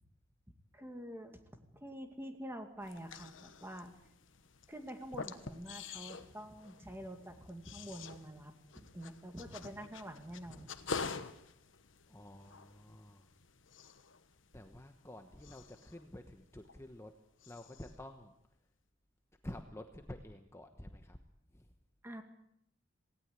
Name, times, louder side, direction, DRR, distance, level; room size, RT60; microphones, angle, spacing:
voice 1, 0.7-1.4 1.7-3.9 4.7-10.7 22.0-22.2, equal, 10° right, 5 dB, 2.4 m, -47 dB
sound 1, 2.8-17.1 17.4-18.0, left 4 dB, 70° left, 1.2 m, -48 dB
voice 2, 12.1-13.3 14.5-17.1 17.5-18.3 19.4-21.2 21.5-21.7, left 1 dB, 15° left, 5 dB, 1.2 m, -50 dB
18.5 x 18.0 x 8.4 m, 0.77 s
head